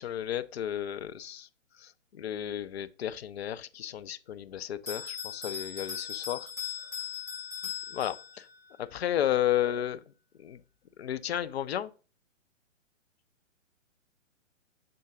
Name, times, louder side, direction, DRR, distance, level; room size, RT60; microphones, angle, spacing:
voice 1, 0.0-1.5 1.8-6.5 7.9-8.5 8.8-10.0 10.4-10.6 11.0-11.9, left 11 dB, 55° left, 0.5 m, -33 dB
Bell, 4.9-8.6, left 7 dB, 5° left, 1.6 m, -38 dB
6.7 x 3.8 x 3.7 m
figure-of-eight pair, 125°, 38 cm